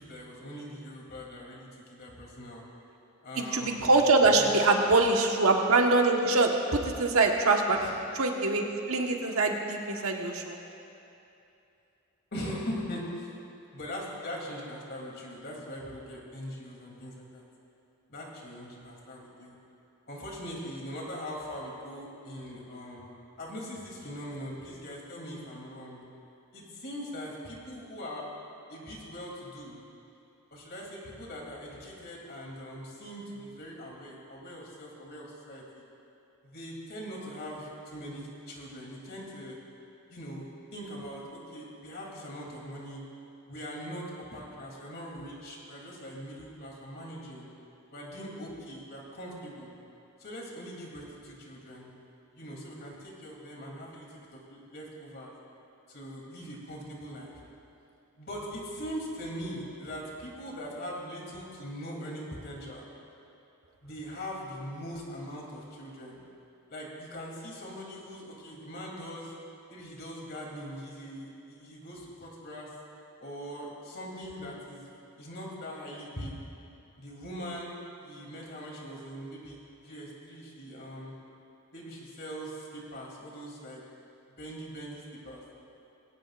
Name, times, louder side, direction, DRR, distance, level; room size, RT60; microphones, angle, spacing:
voice 1, 0.0-2.6 3.2-4.5 7.7-8.0 12.3-13.3 13.7-17.4 18.1-19.6 20.1-23.0 23.4-26.0 26.5-28.3 28.7-29.8 30.5-35.8 36.4-39.6 40.1-43.0 43.5-47.5 47.9-49.7 50.2-51.9 52.3-55.3 55.9-57.3 58.2-62.9 63.8-66.2 66.7-69.3 69.7-72.7 73.2-74.9 75.2-76.3 77.0-77.7 78.0-81.1 81.7-83.8 84.4-85.4, equal, 50° left, -2 dB, 3.1 m, -41 dB
voice 2, 3.3-10.6, right 3 dB, 80° right, 2 dB, 1.4 m, -24 dB
21.5 x 17.0 x 2.5 m, 2.7 s
head